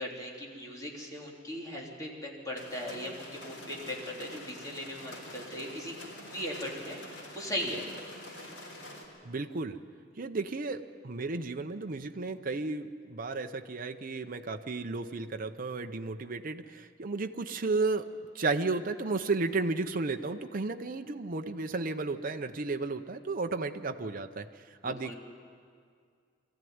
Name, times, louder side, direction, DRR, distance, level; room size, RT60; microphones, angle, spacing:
voice 1, 0.0-5.9 6.2-7.8 24.8-25.2, equal, 20° left, -3 dB, 3.5 m, -38 dB
sound 1, 2.6-9.0, left 1 dB, 80° left, 4.9 m, -46 dB
voice 2, 9.2-9.8 10.2-18.1 18.3-25.1, right 3 dB, 45° right, 6 dB, 0.7 m, -33 dB
23.0 x 14.5 x 9.4 m, 2.2 s
head